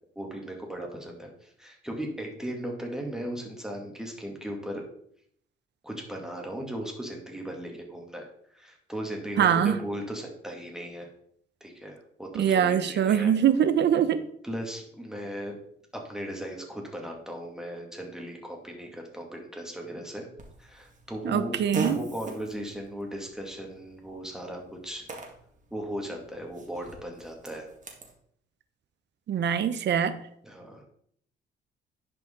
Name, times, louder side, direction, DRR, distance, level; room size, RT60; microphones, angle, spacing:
voice 1, 0.2-4.9 5.8-11.1 11.6-13.3 14.4-15.6 15.9-20.3 20.6-21.5 21.8-25.1 25.7-27.7 30.4-30.8, equal, 5° right, 0 dB, 2.2 m, -37 dB
voice 2, 9.4-9.8 12.3-14.2 21.2-22.0 29.3-30.2, right 9 dB, 60° right, 13 dB, 0.8 m, -23 dB
Fart, 20.4-28.1, right 3 dB, 40° right, 2.0 m, -41 dB
10.5 x 5.0 x 3.8 m, 0.67 s
cardioid pair, 90°, 20 cm